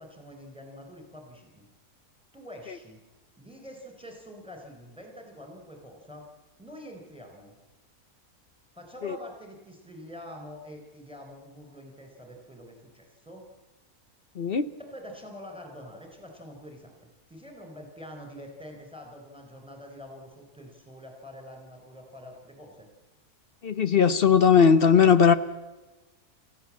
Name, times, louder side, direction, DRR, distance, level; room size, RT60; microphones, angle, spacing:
voice 1, 0.0-1.7 2.3-3.0 3.4-6.3 6.6-7.5 8.7-13.4 14.8-17.0 17.3-22.9, equal, 5° right, 2 dB, 4.1 m, -45 dB
voice 2, 14.4-14.7 23.6-25.3, left 6 dB, 45° left, 13 dB, 0.9 m, -19 dB
29.5 x 15.0 x 7.4 m, 1.2 s
omnidirectional pair, 1.6 m